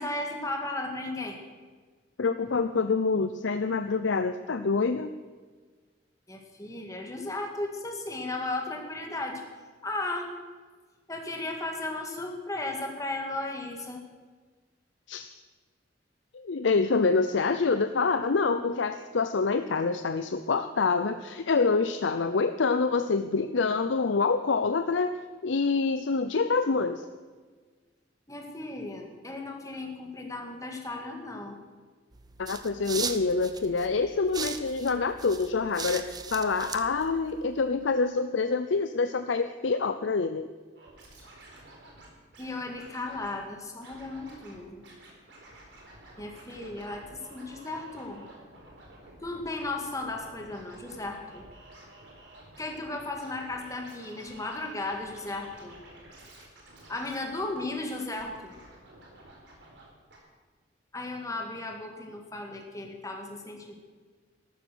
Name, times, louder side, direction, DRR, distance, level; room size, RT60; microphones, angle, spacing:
voice 1, 0.0-1.4 6.3-9.4 9.8-10.3 11.1-14.0 28.3-31.6 42.4-44.9 46.2-48.2 49.2-51.5 52.6-55.8 56.9-58.5 60.9-63.7, left 2 dB, 20° left, 2 dB, 2.0 m, -35 dB
voice 2, 2.2-5.1 15.1-15.3 16.3-25.2 25.4-27.0 32.4-40.5, left 4 dB, 85° left, 9 dB, 0.6 m, -26 dB
sound 1, 32.1-37.6, right 5 dB, 20° right, 0.7 m, -39 dB
Scratching (performance technique), 40.7-42.5 42.7-43.3 43.8-44.6 44.8-59.8 60.1-60.2, right 1 dB, 70° right, 4.3 m, -51 dB
14.0 x 12.5 x 6.3 m, 1.4 s
head